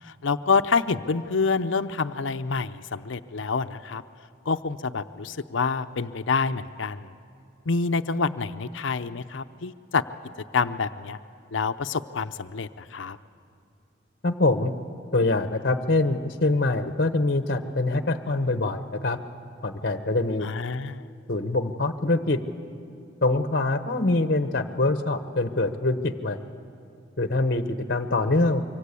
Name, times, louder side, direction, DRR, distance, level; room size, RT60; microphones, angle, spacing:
voice 1, 0.0-4.0 4.5-7.1 7.7-10.0 10.5-11.2 11.5-13.2 20.4-21.1, left 4 dB, 75° left, 11 dB, 0.6 m, -27 dB
voice 2, 14.2-14.7 15.1-19.2 19.6-20.5 21.3-22.4 23.2-26.4 27.2-28.6, left 2 dB, 50° left, 8 dB, 1.1 m, -24 dB
25.5 x 24.0 x 8.3 m, 2.5 s
head